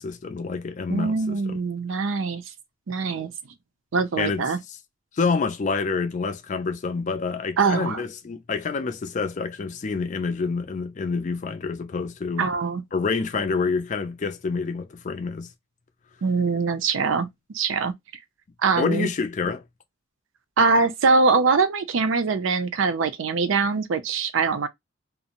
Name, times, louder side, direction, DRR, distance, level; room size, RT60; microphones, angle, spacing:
voice 1, 0.0-1.6 4.2-4.5 5.1-12.5 12.9-15.5 18.7-19.6, left 4 dB, 40° left, 0.4 m, -27 dB
voice 2, 0.9-2.4 2.9-3.3 3.9-4.6 7.6-8.0 12.4-12.8 16.2-17.9 18.6-19.1 20.6-24.7, right 4 dB, 85° right, 0.5 m, -23 dB
2.5 x 2.0 x 2.8 m
head